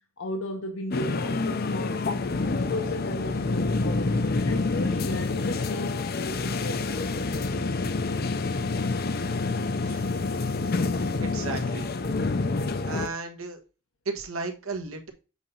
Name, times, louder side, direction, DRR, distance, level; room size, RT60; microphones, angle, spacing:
voice 1, 0.2-7.2, left 2 dB, 70° left, 0.9 m, -35 dB
sound 1, 0.9-13.1, left 3 dB, 45° left, 0.5 m, -27 dB
voice 2, 11.2-11.9 12.8-13.6 14.0-15.1, right 3 dB, 90° right, 1.5 m, -34 dB
8.0 x 2.8 x 5.4 m
head